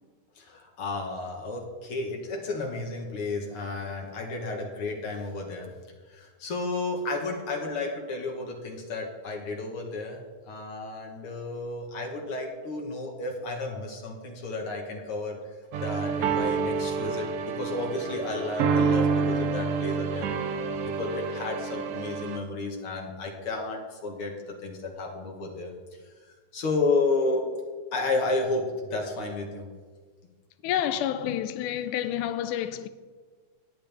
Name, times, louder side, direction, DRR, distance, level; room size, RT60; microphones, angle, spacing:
voice 1, 0.4-5.7 6.1-15.4 15.8-20.3 20.8-24.3 24.6-25.7 26.5-27.4 27.9-29.7, left 3 dB, 55° left, 1.8 m, -32 dB
sound 1, 15.7-22.4, right 5 dB, 85° right, 2.5 m, -28 dB
voice 2, 30.6-32.9, left 10 dB, 80° left, 2.1 m, -29 dB
17.5 x 10.0 x 3.4 m
omnidirectional pair, 3.7 m